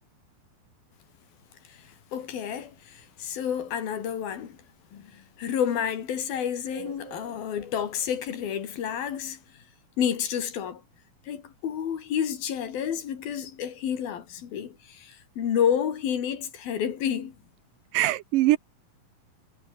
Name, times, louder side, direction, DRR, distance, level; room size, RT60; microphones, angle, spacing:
voice 1, 1.7-4.6 4.9-9.4 10.0-10.8 11.3-17.3, left 8 dB, 75° left, 4.5 m, -30 dB
voice 2, 6.7-7.2 17.9-18.6, right 16 dB, 75° right, 2.2 m, -24 dB
omnidirectional pair, 4.2 m